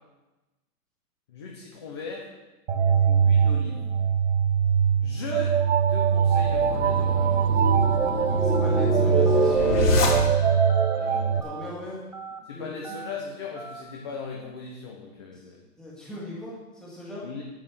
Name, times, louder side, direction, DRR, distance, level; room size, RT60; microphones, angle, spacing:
voice 1, 1.3-2.3 3.1-3.8 5.0-5.6 5.9-7.7 12.4-15.6 17.2-17.4, left 5 dB, 15° left, -1 dB, 0.7 m, -38 dB
sound 1, 2.7-11.4, right 7 dB, 45° right, 0.9 m, -22 dB
sound 2, 6.1-10.7, left 4 dB, 70° left, 3.6 m, -27 dB
Telephone, 7.8-8.1 8.5-8.8 9.3-9.5 10.0-10.2 10.7-11.0 11.4-11.7 12.1-12.4 12.8-13.1 13.6-13.8, right 5 dB, 25° right, 0.4 m, -39 dB
voice 2, 8.2-9.8 10.9-12.0 12.5-12.7 15.3-15.4 15.8-17.3, left 2 dB, ahead, -7 dB, 2.0 m, -38 dB
9.6 x 8.9 x 6.3 m, 1.1 s
hypercardioid pair, 170°, 48 cm